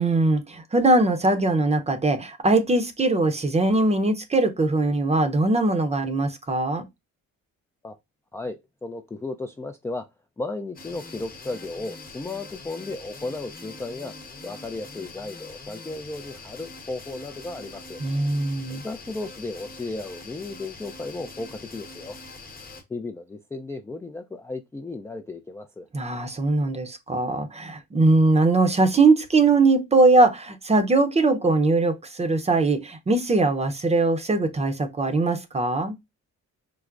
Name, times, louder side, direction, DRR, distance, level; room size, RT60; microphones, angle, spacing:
voice 1, 0.0-6.8 18.0-18.8 25.9-36.0, right 3 dB, 20° right, 0.6 m, -21 dB
voice 2, 8.3-10.1 10.4-14.1 14.4-18.0 18.8-22.2 22.9-25.9, left 2 dB, 10° left, 0.3 m, -35 dB
sound 1, 10.8-22.8, left 3 dB, 30° left, 0.9 m, -43 dB
4.5 x 2.0 x 2.4 m
cardioid pair, 90°, 30 cm